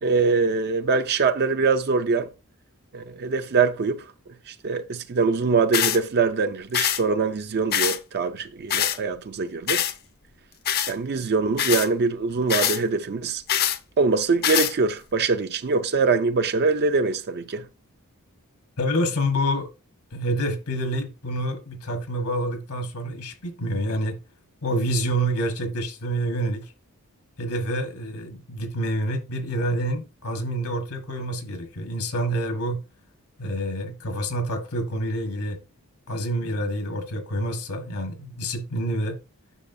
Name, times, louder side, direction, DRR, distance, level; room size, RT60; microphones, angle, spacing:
voice 1, 0.0-2.3 2.9-4.1 4.5-9.8 10.9-13.4 14.0-17.7, right 4 dB, 45° right, 0.5 m, -23 dB
sound 1, 5.7-6.0 6.7-7.0 7.7-8.0 8.7-9.0 9.7-9.9 10.7-10.9 11.6-11.9 12.5-12.8 13.5-13.8 14.4-14.7, left 10 dB, 45° left, 0.6 m, -23 dB
voice 2, 18.8-19.7 20.1-24.2 24.6-26.7 27.4-32.8 33.4-35.6 36.1-39.2, right 1 dB, 70° left, 1.4 m, -27 dB
9.8 x 6.2 x 2.6 m
head